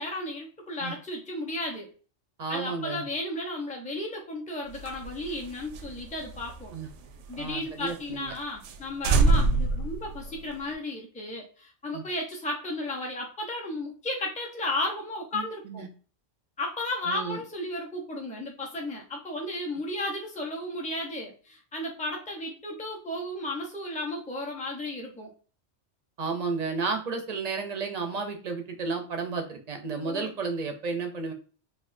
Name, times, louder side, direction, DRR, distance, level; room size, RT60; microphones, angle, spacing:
voice 1, 0.0-1.9 2.5-6.7 7.3-15.9 16.6-25.3 30.0-30.3, left 1 dB, 10° left, 0 dB, 0.7 m, -34 dB
voice 2, 2.4-3.0 6.7-6.9 7.4-8.3 11.9-12.0 15.3-15.9 17.1-17.4 26.2-31.3, right 4 dB, 40° right, 5 dB, 0.6 m, -32 dB
sound 1, 4.7-7.5 7.9-8.0 8.3-8.4 8.6-8.8 9.0-10.7, right 3 dB, 85° right, 0.9 m, -26 dB
4.3 x 2.6 x 2.6 m, 0.38 s
omnidirectional pair, 1.2 m